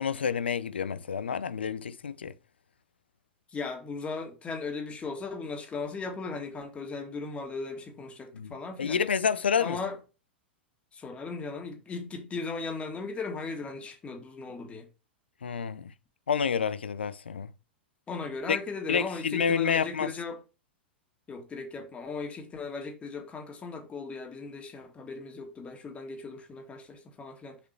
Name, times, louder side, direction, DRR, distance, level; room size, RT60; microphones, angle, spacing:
voice 1, 0.0-2.3 8.3-8.5 8.8-9.8 15.4-15.9 16.3-17.5 18.5-18.6 18.9-20.1, left 6 dB, 75° left, 0.6 m, -28 dB
voice 2, 3.5-9.0 9.6-10.0 10.9-14.9 18.1-20.4 21.3-27.6, left 4 dB, 20° left, 2.1 m, -37 dB
6.8 x 5.2 x 4.5 m
figure-of-eight pair, 95°, 6 cm